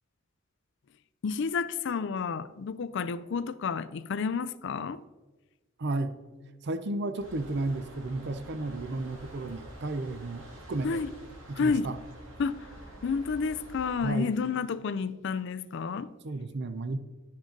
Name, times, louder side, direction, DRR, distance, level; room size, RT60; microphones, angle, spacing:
voice 1, 1.2-5.0 10.8-11.1 11.6-11.9 12.4-12.7 13.0-16.1, left 5 dB, 65° left, 0.4 m, -30 dB
voice 2, 5.8-6.1 6.6-11.0 11.5-12.0 14.0-14.3 16.2-17.0, right 2 dB, 60° right, 0.6 m, -33 dB
sound 1, 7.2-13.9, right 1 dB, 85° right, 2.1 m, -48 dB
10.5 x 7.4 x 3.8 m
head